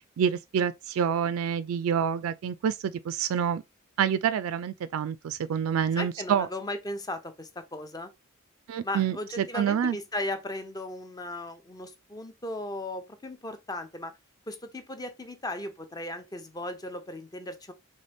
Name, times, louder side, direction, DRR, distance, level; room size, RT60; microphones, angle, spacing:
voice 1, 0.2-3.6 4.0-6.5 8.7-10.0, right 8 dB, 75° right, 0.3 m, -27 dB
voice 2, 6.0-8.1 8.8-14.1 14.5-17.7, left 1 dB, 20° left, 0.6 m, -36 dB
4.1 x 3.2 x 3.4 m
head